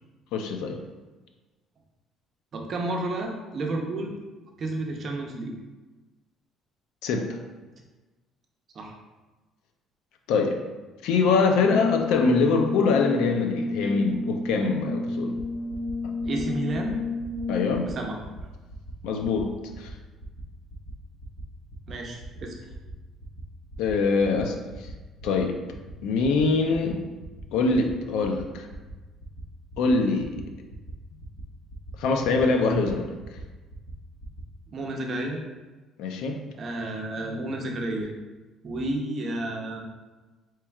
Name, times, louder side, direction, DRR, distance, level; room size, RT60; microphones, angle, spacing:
voice 1, 0.3-0.8 7.0-7.2 10.3-10.6 11.0-15.4 16.0-16.1 17.5-17.9 19.0-19.9 23.8-24.9 25.2-25.6 26.0-27.0 27.5-28.7 29.8-30.3 32.0-33.1 36.0-36.4, left 4 dB, 85° left, 4 dB, 0.4 m, -24 dB
voice 2, 2.5-4.1 4.6-5.5 8.7-8.9 16.2-17.0 17.8-18.2 21.9-22.5 34.7-35.4 36.6-38.1 38.6-39.8, right 2 dB, 40° right, 1 dB, 0.6 m, -31 dB
Brass instrument, 11.6-18.0, left 3 dB, 45° left, 1.5 m, -30 dB
sound 1, 15.4-15.5 15.7-15.9 16.2-16.4 16.7-16.9 17.2-17.4 17.7-17.9 18.2-18.4 18.7-18.9 19.2-19.4 19.7-19.9 20.2-20.4 20.7-20.9 21.2-21.4 21.7-21.9 22.2-22.4 22.7-22.9 23.2-23.4 23.7-23.9 24.2-24.4 24.7-24.9 25.2-25.4 25.7-25.9 26.2-26.4 26.7-26.9 27.2-27.4 27.7-27.9 28.2-28.4 28.7-28.9 29.2-29.4 29.7-29.9 30.2-30.4 30.7-30.9 31.2-31.4 31.7-31.9 32.2-32.4 32.7-32.9 33.2-33.4 33.7-33.9 34.2-34.4, right 1 dB, 20° left, 0.8 m, -44 dB
4.3 x 3.0 x 2.3 m, 1.2 s
cardioid pair, 135°, 0 cm